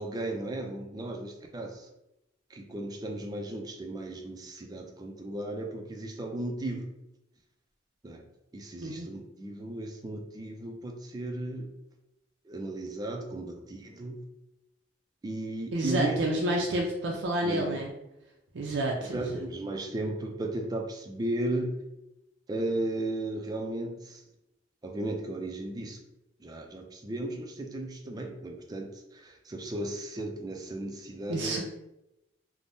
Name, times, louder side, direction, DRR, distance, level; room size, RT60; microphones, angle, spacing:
voice 1, 0.0-1.9 2.5-6.9 8.0-8.2 8.5-11.7 12.5-14.2 15.2-16.4 17.4-17.8 19.0-21.7 22.5-24.2 24.8-26.0 26.4-31.7, right 2 dB, 20° right, 2 dB, 0.4 m, -35 dB
voice 2, 15.7-17.9 18.5-19.4 31.3-31.7, right 1 dB, 90° right, -1 dB, 0.5 m, -29 dB
3.3 x 2.1 x 2.6 m, 0.87 s
head